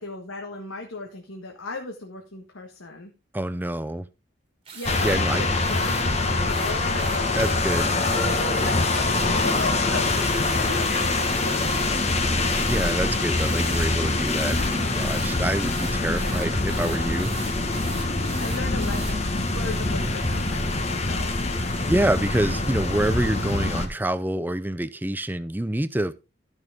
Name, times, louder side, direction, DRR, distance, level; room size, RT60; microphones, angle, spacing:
voice 1, 0.0-3.1 4.7-7.8 8.1-12.1 16.2-16.5 18.4-21.8, left 2 dB, 80° left, 2 dB, 1.6 m, -36 dB
voice 2, 3.3-4.1 5.0-5.4 7.3-7.9 12.6-17.3 21.8-26.1, right 1 dB, 10° right, 15 dB, 0.4 m, -27 dB
sound 1, 4.7-5.2 5.6-6.1 6.5-11.9 12.3-13.0 13.3-13.9 14.2-19.2, right 5 dB, 25° right, 1.9 m, -41 dB
sound 2, 4.8-23.9, left 2 dB, 30° left, 1.3 m, -24 dB
14.0 x 6.3 x 3.5 m, 0.28 s
head